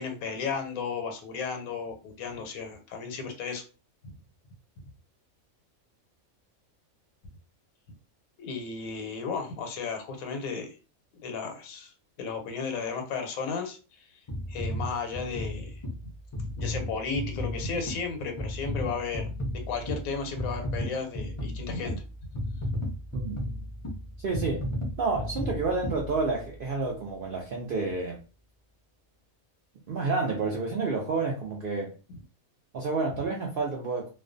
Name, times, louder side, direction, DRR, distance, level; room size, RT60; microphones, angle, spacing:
voice 1, 0.0-3.6 8.4-10.7 11.2-11.9 12.2-14.1 14.5-15.8 16.6-19.3 19.7-22.0 22.3-22.4 33.1-33.2, left 5 dB, 85° left, 5 dB, 1.0 m, -34 dB
sound 1, 14.3-26.7 27.3-27.4, left 1 dB, 50° left, 0.3 m, -34 dB
voice 2, 24.2-24.7 25.0-28.2 29.9-31.9 32.7-34.1, right 3 dB, 80° right, 0 dB, 0.4 m, -29 dB
2.4 x 2.2 x 2.5 m, 0.34 s
omnidirectional pair, 1.5 m